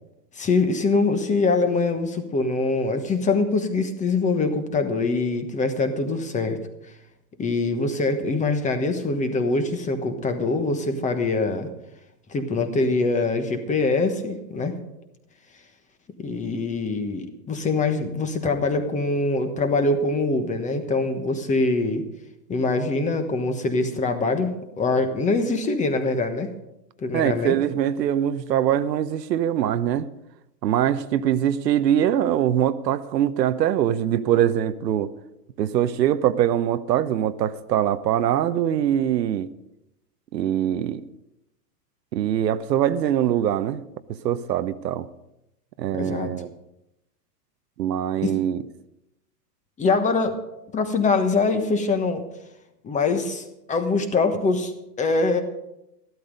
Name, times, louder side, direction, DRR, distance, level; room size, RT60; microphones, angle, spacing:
voice 1, 0.3-6.6 7.4-11.7 12.3-14.8 16.2-22.1 22.5-26.5 27.0-27.5 45.9-46.3 48.2-48.3 49.8-50.4 50.7-52.2 52.8-54.7 55.0-55.4, left 3 dB, 15° left, 1.2 m, -23 dB
voice 2, 27.1-30.1 30.6-35.1 35.6-39.5 40.3-41.0 42.1-43.8 44.2-45.1 45.8-46.5 47.8-48.6, right 10 dB, 85° right, 1.0 m, -23 dB
14.0 x 12.5 x 5.2 m
hypercardioid pair, 140°, 48 cm